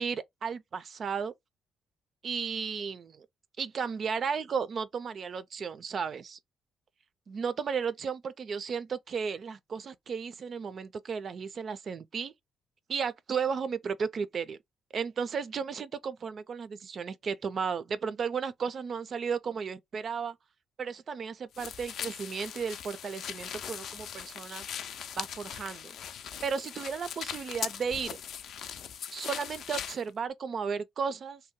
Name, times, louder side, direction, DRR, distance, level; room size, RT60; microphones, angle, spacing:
voice 1, 0.0-1.3 2.2-3.3 3.6-6.4 7.3-12.3 12.9-14.6 14.9-20.4 20.8-24.6 25.2-26.0 26.4-28.2 29.1-31.4, right 6 dB, 50° right, 0.3 m, -34 dB
sound 1, 21.5-30.0, left 8 dB, 70° left, 0.4 m, -40 dB
2.7 x 2.1 x 3.6 m
cardioid pair, 90°, 0 cm